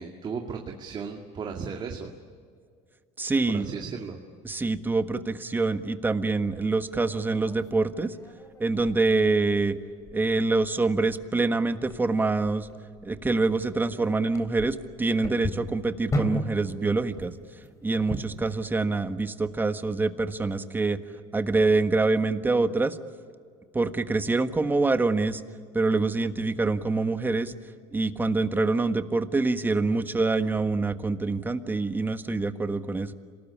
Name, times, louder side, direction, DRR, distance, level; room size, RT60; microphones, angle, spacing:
voice 1, 0.0-2.1 3.5-4.2, right 5 dB, 35° right, 2 dB, 2.3 m, -35 dB
voice 2, 3.2-3.7 4.4-8.1 8.6-9.8 10.1-12.7 13.0-17.3 17.8-21.0 21.3-23.0 23.7-25.4 25.7-27.5 27.9-33.1, right 3 dB, 15° right, 10 dB, 1.5 m, -25 dB
sound 1, 6.4-18.6, left 1 dB, 25° left, 3.5 m, -38 dB
27.0 x 19.0 x 10.0 m, 2.2 s
supercardioid pair, 110°, 13 cm